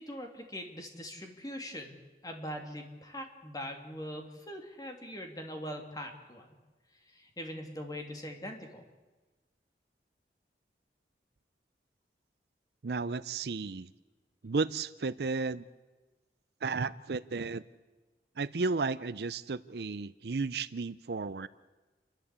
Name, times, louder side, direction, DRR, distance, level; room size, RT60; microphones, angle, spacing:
voice 1, 0.0-1.9 2.2-6.5 7.1-8.8, equal, 20° left, 3 dB, 2.5 m, -42 dB
voice 2, 12.8-13.9 14.4-15.6 16.6-17.6 18.4-21.5, right 4 dB, 65° right, 15 dB, 0.5 m, -33 dB
29.0 x 11.5 x 8.2 m, 1.2 s
head